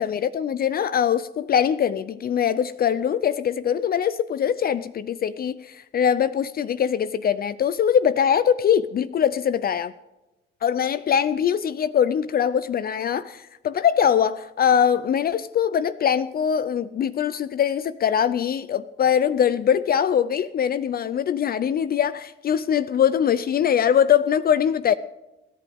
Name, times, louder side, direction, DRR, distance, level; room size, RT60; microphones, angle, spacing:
voice 1, 0.0-9.9 10.6-24.9, left 8 dB, 50° left, 0.5 m, -22 dB
26.0 x 10.5 x 3.6 m
cardioid pair, 90°, 20 cm